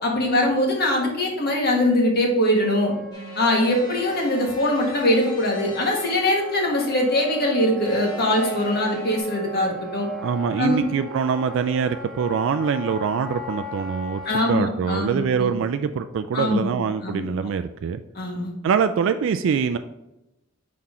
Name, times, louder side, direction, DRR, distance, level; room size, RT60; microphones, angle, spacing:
voice 1, 0.0-2.9 3.3-10.1 10.6-10.8 14.2-15.5 16.3-16.7 17.0-17.2 18.1-18.5, left 1 dB, 50° left, 0 dB, 1.5 m, -22 dB
Wind instrument woodwind instrument, 2.6-14.7, equal, ahead, 0.9 m, -38 dB
sound 1, 3.1-6.6 7.8-9.2, left 1 dB, 20° left, 1.4 m, -41 dB
voice 2, 10.2-18.0 18.6-19.8, right 6 dB, 65° right, 9 dB, 0.3 m, -24 dB
5.9 x 4.2 x 3.7 m, 0.95 s
head